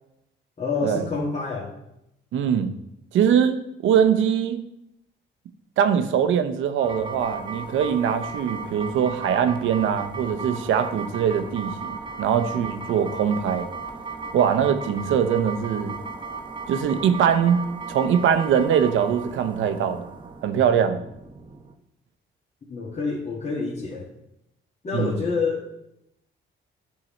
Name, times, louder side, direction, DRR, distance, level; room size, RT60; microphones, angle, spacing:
voice 1, 0.6-1.7 22.7-24.1 24.8-25.6, left 4 dB, 35° left, -7 dB, 1.7 m, -27 dB
voice 2, 2.3-2.7 3.1-4.6 5.8-13.7 14.3-15.9 16.7-17.6 17.9-20.1 20.4-21.0 24.9-25.2, right 8 dB, 80° right, 8 dB, 0.7 m, -22 dB
sound 1, 6.8-21.7, right 4 dB, 25° right, 1.0 m, -36 dB
11.0 x 3.8 x 4.3 m, 0.83 s
cardioid pair, 90°, 20 cm